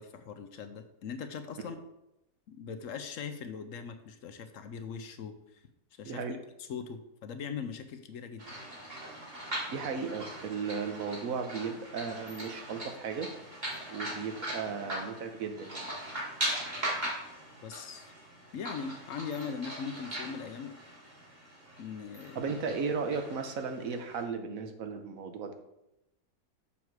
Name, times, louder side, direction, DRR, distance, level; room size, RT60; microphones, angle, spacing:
voice 1, 0.0-1.8 2.5-5.6 6.0-8.5 17.6-18.1 18.5-20.7 21.8-22.5, left 6 dB, 65° left, 9 dB, 0.9 m, -40 dB
voice 2, 6.0-6.4 9.7-13.3 13.9-15.9 22.3-25.5, right 5 dB, 65° right, 6 dB, 1.2 m, -35 dB
sound 1, 8.4-24.2, right 1 dB, 30° right, 1.9 m, -40 dB
7.2 x 6.0 x 4.7 m, 0.89 s
omnidirectional pair, 1.7 m